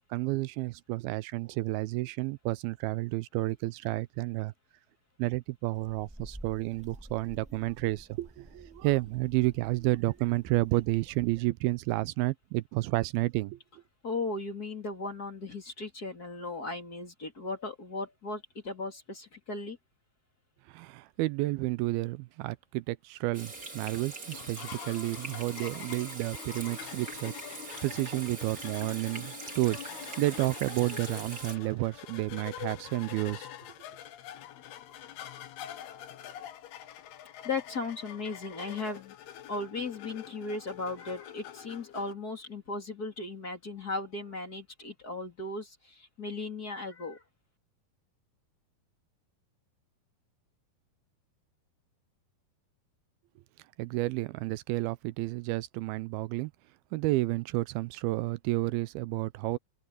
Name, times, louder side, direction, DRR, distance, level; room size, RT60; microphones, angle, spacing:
voice 1, 0.0-4.5 5.2-13.6 20.7-27.3 27.8-33.5 53.8-56.5 56.9-59.6, right 20 dB, 80° right, 2.4 m, -31 dB
sound 1, 5.7-11.4, equal, 5° right, 0.7 m, -51 dB
voice 2, 14.0-19.8 37.4-39.1 39.5-45.7 46.2-47.2, left 3 dB, 25° left, 3.3 m, -36 dB
Water tap faucet / Sink (filling or washing), 23.3-31.6, right 3 dB, 25° right, 3.4 m, -43 dB
sound 2, 24.3-42.1, left 11 dB, 85° left, 3.3 m, -45 dB
omnidirectional pair, 4.4 m